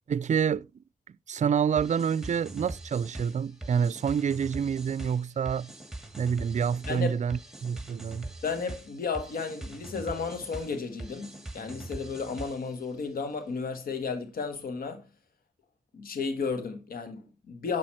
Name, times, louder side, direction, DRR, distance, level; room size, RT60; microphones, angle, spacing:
voice 1, 0.1-0.7 1.3-5.7 6.2-8.3, right 7 dB, 55° right, 0.4 m, -27 dB
sound 1, 1.8-12.8, right 2 dB, 5° right, 1.9 m, -42 dB
voice 2, 8.4-15.0 15.9-17.8, left 5 dB, 85° left, 1.3 m, -33 dB
8.2 x 6.2 x 4.3 m
cardioid pair, 45°, 15 cm